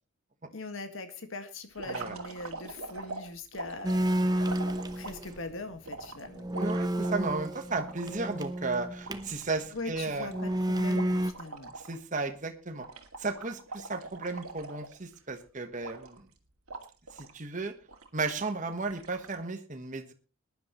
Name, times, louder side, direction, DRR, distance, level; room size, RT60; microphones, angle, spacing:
voice 1, 0.5-4.6 4.9-6.5 9.7-11.7, left 2 dB, 65° left, 8 dB, 1.8 m, -41 dB
sound 1, 1.7-5.3 5.9-8.4 8.7-8.8 9.0-12.0 12.2-12.5 12.8-15.3 15.8-16.3 16.7-17.4 17.9-18.5 18.9-19.4, right 3 dB, 80° right, 2.2 m, -43 dB
sound 2, 3.8-5.5 5.9-6.0 6.3-9.4 10.2-11.3, right 1 dB, 20° right, 0.8 m, -30 dB
voice 2, 6.5-10.3 11.9-12.8 13.2-16.3 17.2-17.7 18.1-20.1, right 3 dB, 35° right, 6 dB, 1.3 m, -34 dB
21.0 x 10.5 x 3.1 m, 0.35 s
head